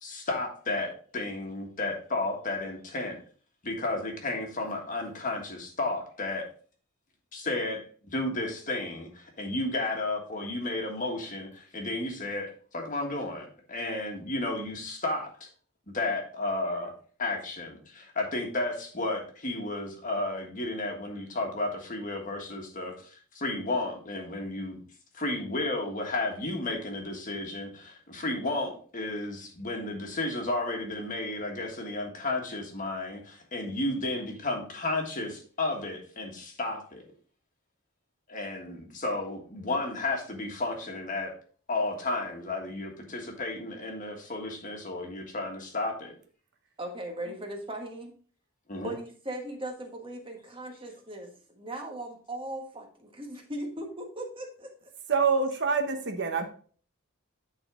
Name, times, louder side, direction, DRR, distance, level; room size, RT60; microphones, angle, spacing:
voice 1, 0.0-3.2 3.6-6.4 7.3-15.5 15.9-16.9 17.2-24.8 25.1-37.0 38.3-41.3 41.7-46.2 48.7-48.9, left 2 dB, 40° left, 2 dB, 1.5 m, -33 dB
voice 2, 46.8-48.1 48.8-54.7, right 1 dB, 25° right, 2 dB, 1.3 m, -38 dB
voice 3, 55.1-56.5, right 5 dB, 55° right, 5 dB, 0.9 m, -26 dB
10.0 x 4.1 x 3.7 m, 0.43 s
head